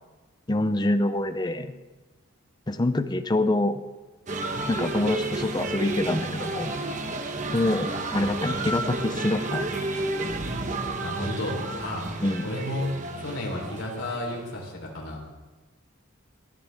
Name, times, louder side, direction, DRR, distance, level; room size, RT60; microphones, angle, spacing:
voice 1, 0.5-1.7 2.7-3.8 4.7-6.7 7.5-9.7 12.2-12.5, left 1 dB, 20° left, 11 dB, 0.5 m, -26 dB
sound 1, 4.3-14.6, right 2 dB, 35° right, 1.0 m, -31 dB
voice 2, 11.0-12.1 12.4-15.2, left 1 dB, 85° left, -1 dB, 3.6 m, -32 dB
18.0 x 13.5 x 3.5 m, 1.2 s
head